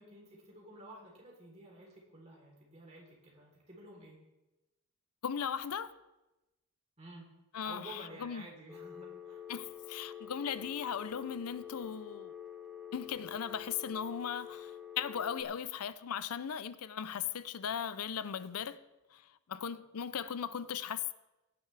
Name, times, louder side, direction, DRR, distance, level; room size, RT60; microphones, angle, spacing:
voice 1, 0.0-4.2 7.0-7.3 7.6-9.4, right 1 dB, 30° right, 3.4 m, -51 dB
voice 2, 5.2-5.9 7.5-8.5 9.5-12.3 12.9-18.8 19.1-21.1, left 8 dB, 85° left, 0.5 m, -38 dB
Telephone, 8.7-15.4, left 9 dB, ahead, 1.5 m, -47 dB
17.5 x 10.0 x 3.3 m
head